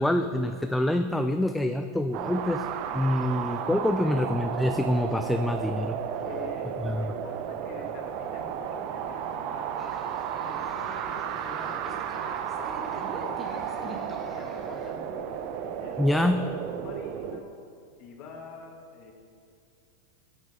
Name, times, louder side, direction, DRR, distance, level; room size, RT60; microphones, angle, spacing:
voice 1, 0.0-2.6 2.9-6.0 6.8-7.1 16.0-16.4, left 1 dB, 5° left, 7 dB, 0.4 m, -26 dB
sound 1, 2.1-17.4, right 8 dB, 55° right, 0.6 m, -33 dB
voice 2, 6.2-9.9 10.4-17.6 18.0-19.1, left 4 dB, 50° left, 1 dB, 1.9 m, -46 dB
sound 2, 9.8-15.0, right 2 dB, 25° right, 1.3 m, -43 dB
11.0 x 8.9 x 3.7 m, 2.3 s
hypercardioid pair, 120°, 0 cm